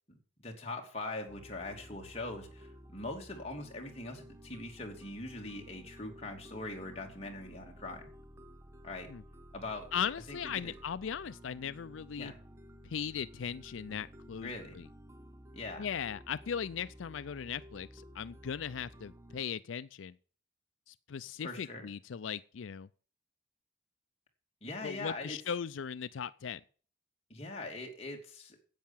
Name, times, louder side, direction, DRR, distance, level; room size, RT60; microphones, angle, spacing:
voice 1, 0.1-8.0 8.8-9.1 9.5-9.9 10.3-10.7 12.2-12.4 14.4-14.8 15.5-15.9 21.4-21.9 24.6-25.4 27.3-28.6, left 2 dB, 30° left, 2.7 m, -42 dB
sound 1, 1.3-19.4, equal, 15° right, 0.7 m, -53 dB
voice 2, 9.9-12.3 12.8-14.9 15.8-20.1 20.9-22.9 24.8-26.6, left 7 dB, 90° left, 0.5 m, -38 dB
10.5 x 8.5 x 7.3 m
head